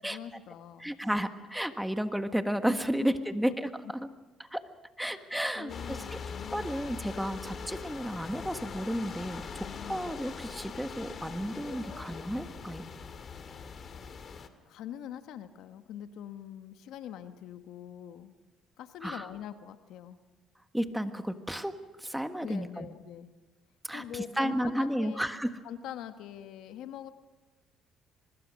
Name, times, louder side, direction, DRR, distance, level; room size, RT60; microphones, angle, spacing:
voice 1, 0.0-0.9 3.0-3.1 5.1-5.3 5.5-6.7 9.7-10.1 14.7-18.3 18.8-20.2 22.4-23.3 23.9-25.3 25.6-27.1, left 10 dB, 75° left, 9 dB, 1.2 m, -43 dB
voice 2, 0.8-3.7 4.0-4.1 4.4-4.6 5.0-6.2 6.5-12.9 19.0-19.3 20.7-21.7 22.0-22.9 23.9-25.5, equal, 5° right, 9 dB, 1.5 m, -32 dB
sound 1, 5.7-14.5, left 5 dB, 45° left, 2.0 m, -42 dB
24.0 x 21.0 x 6.4 m, 1.2 s
cardioid pair, 85°, 0 cm